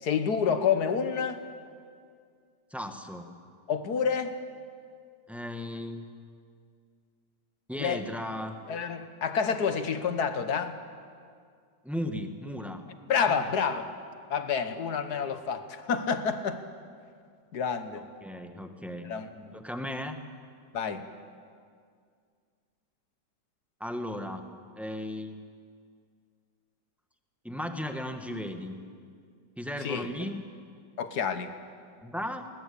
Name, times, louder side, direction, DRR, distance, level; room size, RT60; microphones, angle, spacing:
voice 1, 0.0-1.4 3.7-4.4 7.8-8.0 8.7-10.8 13.1-13.9 14.3-16.6 17.5-18.0 19.0-19.6 20.7-21.0 29.8-30.1 31.0-31.5, left 6 dB, 65° left, 10 dB, 1.7 m, -28 dB
voice 2, 2.7-3.3 5.3-6.1 7.7-8.6 11.8-12.8 13.3-13.4 18.2-19.1 19.5-20.2 23.8-24.4 24.7-25.4 27.4-28.8 29.6-30.4 32.0-32.4, left 1 dB, ahead, 6 dB, 1.2 m, -36 dB
20.0 x 20.0 x 8.6 m, 2.1 s
omnidirectional pair, 1.9 m